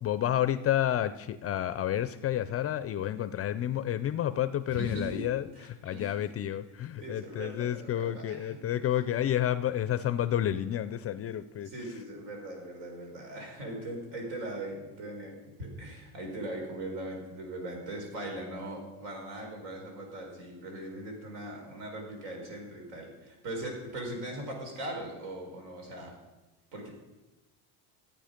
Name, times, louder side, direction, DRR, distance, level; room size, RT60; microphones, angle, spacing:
voice 1, 0.0-11.7, left 11 dB, 30° left, 13 dB, 0.4 m, -30 dB
voice 2, 4.7-5.2 5.6-6.2 7.0-8.6 11.6-26.1 26.7-26.9, right 1 dB, 85° right, 1 dB, 4.5 m, -40 dB
14.5 x 8.9 x 5.1 m, 1.1 s
cardioid pair, 130°, 48 cm